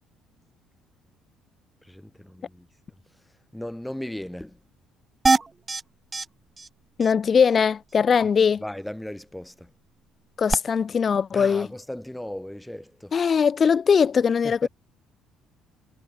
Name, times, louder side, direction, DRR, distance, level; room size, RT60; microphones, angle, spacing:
voice 1, 1.9-2.7 3.5-4.6 8.6-9.7 11.3-13.1 14.6-14.7, left 1 dB, 5° left, 6.0 m, -36 dB
sound 1, 5.3-5.8 6.1-6.3 6.6-6.7 7.0-7.1 10.5-10.6, right 3 dB, 15° right, 1.6 m, -21 dB
voice 2, 7.0-8.6 10.4-11.7 13.1-14.7, left 6 dB, 25° left, 2.5 m, -20 dB
cardioid pair, 175°, 0 cm